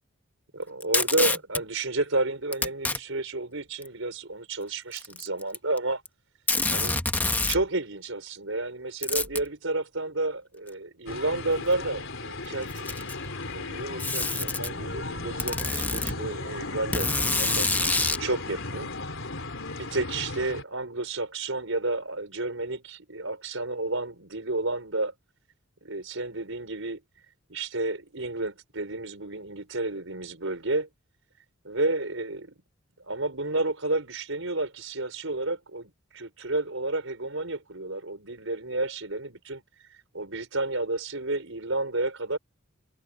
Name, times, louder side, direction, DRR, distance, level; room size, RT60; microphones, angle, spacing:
voice 1, 0.5-6.0 6.7-7.0 7.5-12.9 13.5-17.7 18.2-18.9 19.7-25.1 25.8-27.0 27.5-30.9 31.6-32.5 33.1-39.6 40.1-42.4, right 2 dB, 65° right, 5.2 m, -31 dB
Packing tape duct tape, 0.8-1.6 2.5-3.0 3.8-3.9 4.9-5.8 6.1-6.2 6.5-7.6 9.0-9.5 10.7-10.8 11.7-11.8 12.6-13.3 14.0-14.7 15.4-16.1 16.9-18.2, left 3 dB, 10° left, 1.2 m, -26 dB
sound 1, 11.1-20.6, left 2 dB, 65° left, 4.3 m, -35 dB
head